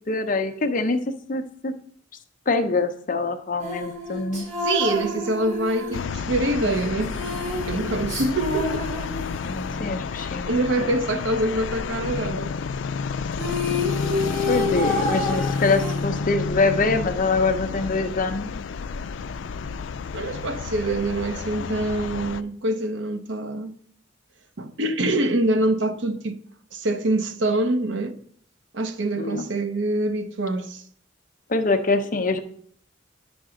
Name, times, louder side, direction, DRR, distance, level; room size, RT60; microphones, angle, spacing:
voice 1, 0.1-1.0 1.3-1.7 2.5-4.5 9.5-11.2 14.5-18.5 29.2-29.5 31.5-32.4, left 3 dB, 45° left, 0.8 m, -24 dB
sound 1, 3.6-9.8 13.0-13.1 13.3-16.5, left 2 dB, 45° right, 3.0 m, -29 dB
voice 2, 4.6-7.3 7.6-8.9 10.1-12.5 20.1-23.7 24.6-26.4 26.7-28.2 28.7-30.8, right 1 dB, 70° right, 0.8 m, -25 dB
sound 2, 5.9-22.4, left 5 dB, 80° left, 0.4 m, -30 dB
11.0 x 6.1 x 3.8 m
head